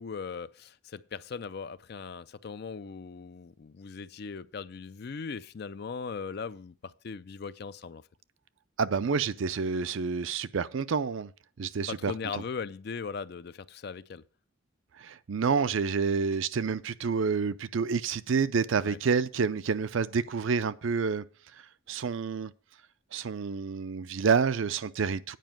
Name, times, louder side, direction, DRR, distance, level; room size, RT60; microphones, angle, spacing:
voice 1, 0.0-8.0 11.9-14.2 18.8-19.0, left 5 dB, 50° left, 0.4 m, -39 dB
voice 2, 8.8-11.3 11.6-12.1 15.0-21.3 21.9-22.5 23.1-25.4, right 5 dB, 70° right, 0.5 m, -28 dB
9.2 x 5.1 x 7.5 m
head